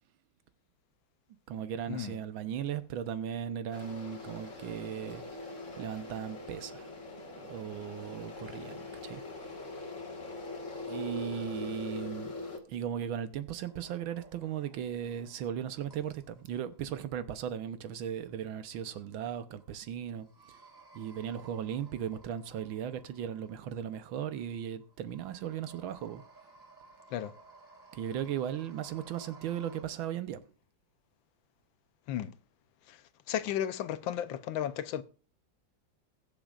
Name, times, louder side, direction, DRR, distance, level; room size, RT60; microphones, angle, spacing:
voice 1, 1.5-5.2 5.7-6.9 7.4-9.2 10.9-12.3 12.7-20.6 20.9-26.2 27.9-30.4, right 9 dB, 85° right, 1.7 m, -37 dB
sound 1, 3.7-12.6, left 3 dB, 40° left, 1.9 m, -42 dB
sound 2, 13.7-29.8, right 3 dB, 10° right, 4.3 m, -58 dB
voice 2, 33.3-35.0, left 10 dB, 80° left, 1.4 m, -34 dB
21.5 x 7.2 x 2.4 m
omnidirectional pair, 2.1 m